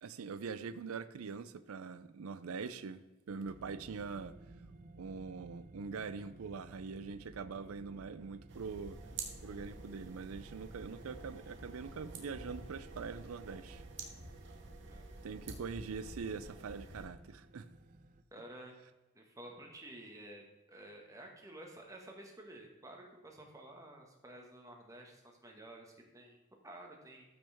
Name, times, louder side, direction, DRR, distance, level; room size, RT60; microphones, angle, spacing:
voice 1, 0.0-3.0 3.3-4.3 5.0-9.0 9.4-13.8 15.2-17.7, right 5 dB, 85° right, 0.5 m, -43 dB
sound 1, 3.4-18.2, right 2 dB, 35° right, 0.5 m, -56 dB
sound 2, 8.5-17.1, right 3 dB, 55° right, 1.5 m, -49 dB
voice 2, 18.3-18.8 19.1-26.4 26.6-27.2, right 1 dB, 15° right, 1.6 m, -52 dB
13.5 x 6.1 x 3.5 m
head